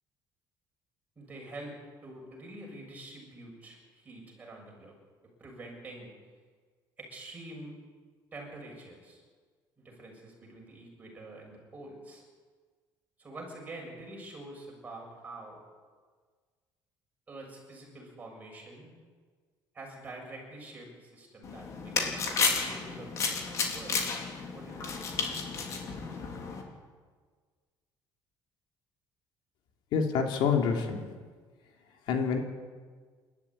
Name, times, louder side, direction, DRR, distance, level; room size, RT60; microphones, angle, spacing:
voice 1, 1.2-4.9 5.4-6.1 7.0-7.8 8.3-9.2 9.8-12.2 13.2-15.6 17.3-18.9 19.7-22.1 22.5-23.4 23.7-24.0 24.5-24.9, right 2 dB, 20° right, -1 dB, 7.1 m, -46 dB
sound 1, 21.4-26.6, left 5 dB, 40° left, 3.7 m, -32 dB
voice 2, 29.9-31.1 32.1-32.4, left 6 dB, 65° left, 3 dB, 3.0 m, -27 dB
28.5 x 13.0 x 10.0 m, 1.5 s
cardioid pair, 170°, 8 cm